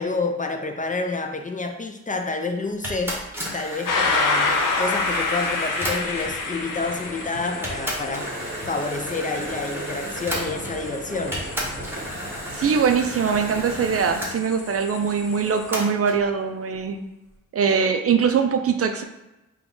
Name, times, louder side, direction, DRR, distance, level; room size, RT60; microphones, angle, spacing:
voice 1, 0.0-3.2 3.5-8.3 8.6-11.4, left 3 dB, 25° left, 5 dB, 0.4 m, -29 dB
sound 1, 2.8-6.4 7.1-7.2 7.6-10.9 11.3-14.3 15.7-16.2, equal, 5° right, 1.2 m, -33 dB
sound 2, 3.9-15.7, left 3 dB, 80° left, 0.6 m, -29 dB
sound 3, 6.0-14.2, right 1 dB, 30° right, 1.0 m, -36 dB
voice 2, 12.5-17.0 17.5-19.0, right 6 dB, 50° right, 6 dB, 0.4 m, -22 dB
3.7 x 2.3 x 3.7 m, 0.99 s
cardioid pair, 60°, 31 cm